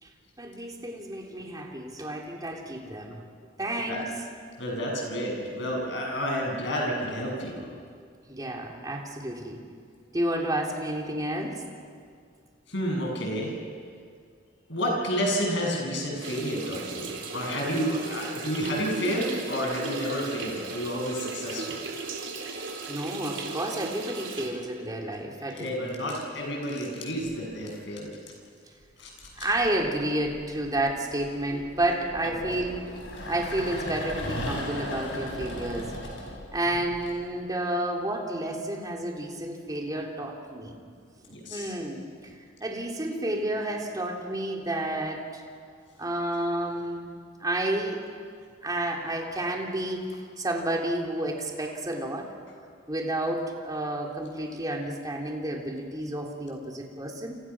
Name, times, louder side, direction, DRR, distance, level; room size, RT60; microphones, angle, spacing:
voice 1, 0.4-3.2 3.6-4.0 8.3-9.6 10.1-11.6 22.9-26.1 29.4-33.0 33.2-35.9 36.5-40.8 41.5-42.3 42.6-45.4 46.0-47.1 47.4-48.1 48.6-50.0 50.4-52.3 52.9-57.4, right 1 dB, 20° right, 0 dB, 3.3 m, -31 dB
voice 2, 4.6-7.7 12.7-13.5 14.7-21.8 25.5-28.1 29.0-29.5 31.5-31.6 32.4-32.5 33.0-33.1 41.3-41.7, equal, 65° left, 0 dB, 7.7 m, -30 dB
sound 1, 16.2-24.5, right 3 dB, 70° right, 4.1 m, -36 dB
sound 2, 27.2-27.7 28.8-37.1, left 1 dB, 80° left, 6.7 m, -38 dB
29.0 x 28.5 x 6.1 m, 2.1 s
head